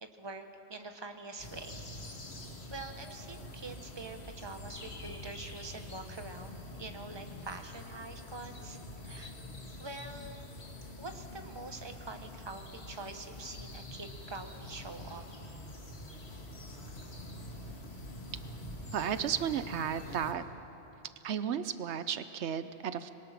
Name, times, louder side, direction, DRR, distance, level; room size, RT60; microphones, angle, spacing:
voice 1, 0.0-1.8 2.7-9.3 9.8-10.4 11.0-15.2, right 3 dB, 25° right, 6 dB, 1.2 m, -45 dB
Sound of the mountain birds and the distant river, 1.4-20.3, left 1 dB, 70° left, 2.2 m, -46 dB
voice 2, 18.9-20.4 21.2-23.1, right 8 dB, 80° right, 12 dB, 1.0 m, -33 dB
26.0 x 22.0 x 5.9 m, 2.9 s
omnidirectional pair, 1.1 m